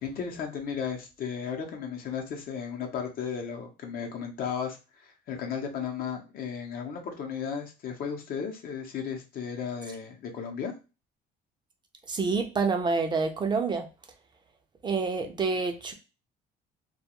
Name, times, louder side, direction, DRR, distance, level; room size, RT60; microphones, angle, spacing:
voice 1, 0.0-10.7, left 7 dB, 60° left, 3 dB, 0.7 m, -35 dB
voice 2, 12.1-13.9 14.8-15.9, right 4 dB, 25° right, 5 dB, 0.4 m, -27 dB
2.3 x 2.3 x 2.9 m, 0.30 s
cardioid pair, 110°, 17 cm